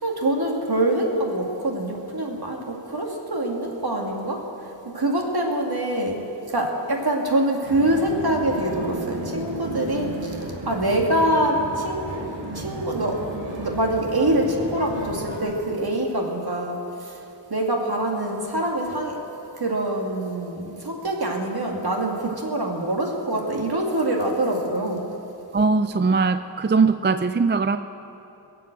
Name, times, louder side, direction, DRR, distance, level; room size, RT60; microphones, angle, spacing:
voice 1, 0.0-17.2 17.5-19.2 19.5-25.1, right 1 dB, 60° right, 0 dB, 2.3 m, -25 dB
sound 1, 7.6-15.4, right 1 dB, 90° right, 2.5 m, -34 dB
voice 2, 25.5-27.8, right 4 dB, 25° right, 10 dB, 0.4 m, -20 dB
21.5 x 7.7 x 7.7 m, 2.9 s
wide cardioid pair, 70°, 43 cm